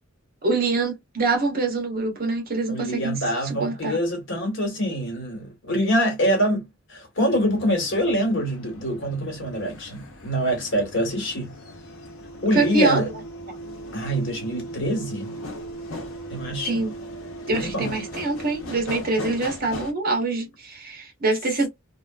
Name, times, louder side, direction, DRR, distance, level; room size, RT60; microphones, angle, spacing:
voice 1, 0.4-3.2 3.4-4.0 12.5-13.1 13.5-13.6 16.6-16.9 17.5-21.7, right 3 dB, 45° right, 1.1 m, -25 dB
voice 2, 2.7-11.5 12.4-13.1 13.9-15.4 16.3-16.9 17.5-17.9, equal, 60° left, 1.4 m, -25 dB
sound 1, 7.4-19.9, equal, 85° left, 0.9 m, -38 dB
2.9 x 2.4 x 2.3 m
head